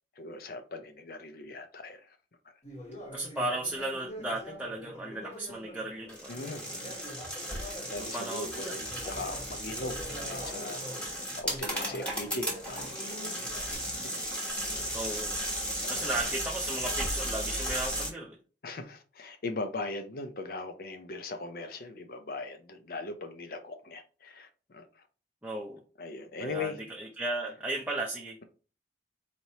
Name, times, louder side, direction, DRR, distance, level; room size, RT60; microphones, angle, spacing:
voice 1, 0.2-2.2 6.3-7.0 7.9-13.7 14.0-14.2 15.8-16.2 18.6-25.0 26.0-26.8, left 3 dB, 55° left, 0.5 m, -40 dB
Conversation, 2.6-8.4 8.8-13.7, left 1 dB, 40° left, 1.3 m, -45 dB
voice 2, 3.1-6.3 8.1-8.7 14.9-15.3 15.9-18.4 25.4-25.8 26.4-26.7 27.0-28.4, right 2 dB, 10° right, 0.5 m, -35 dB
sound 1, 6.1-18.1, equal, 5° left, 1.2 m, -35 dB
4.1 x 3.1 x 2.8 m
head